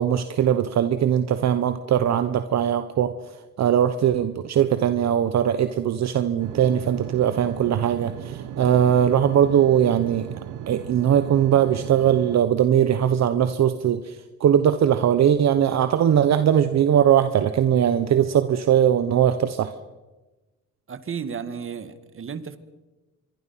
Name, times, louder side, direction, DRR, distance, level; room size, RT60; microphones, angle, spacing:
voice 1, 0.0-3.1 3.6-10.3 10.7-19.7, right 9 dB, 60° right, 10 dB, 1.2 m, -20 dB
sound 1, 6.4-12.4, right 11 dB, 85° right, 0.9 m, -36 dB
voice 2, 20.9-22.6, right 6 dB, 45° right, 12 dB, 1.9 m, -33 dB
25.5 x 23.5 x 5.9 m, 1.1 s
cardioid pair, 90°, 30 cm